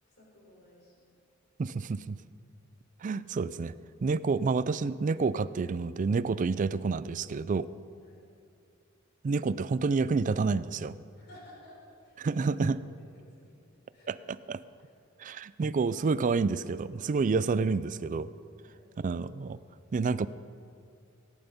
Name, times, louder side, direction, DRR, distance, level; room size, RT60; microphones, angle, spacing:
voice 1, 0.0-0.9 8.0-8.2 11.2-11.8 12.0-12.7 13.4-13.5 13.9-14.1 14.8-14.9 18.6-18.9, left 1 dB, 55° left, -4 dB, 4.1 m, -55 dB
voice 2, 1.6-2.2 3.0-3.7 4.0-7.7 9.2-10.9 12.2-12.8 14.1-14.2 14.5-14.6 15.2-18.3 19.0-19.6 19.9-20.3, right 4 dB, 40° right, 15 dB, 0.4 m, -29 dB
18.0 x 9.1 x 5.2 m, 2.3 s
head